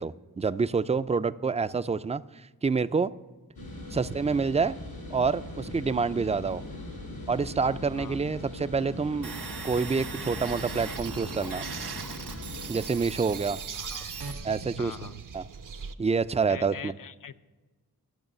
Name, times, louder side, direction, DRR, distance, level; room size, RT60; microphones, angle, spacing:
voice 1, 0.0-2.2 2.6-3.1 3.9-4.8 5.1-6.6 7.3-9.3 9.6-11.7 12.7-13.6 14.4-15.0 15.3-15.4 16.0-16.9, right 5 dB, 20° right, 15 dB, 0.3 m, -27 dB
sound 1, 3.6-12.7, left 1 dB, 80° left, 3.2 m, -40 dB
sound 2, 9.2-14.3, right 5 dB, 75° right, 1.6 m, -40 dB
sound 3, 10.4-15.9, right 6 dB, 60° right, 0.7 m, -42 dB
voice 2, 13.8-14.1 14.8-15.2 16.5-17.4, left 7 dB, 60° left, 12 dB, 0.6 m, -42 dB
11.0 x 6.1 x 9.1 m, 1.3 s
wide cardioid pair, 60°, 37 cm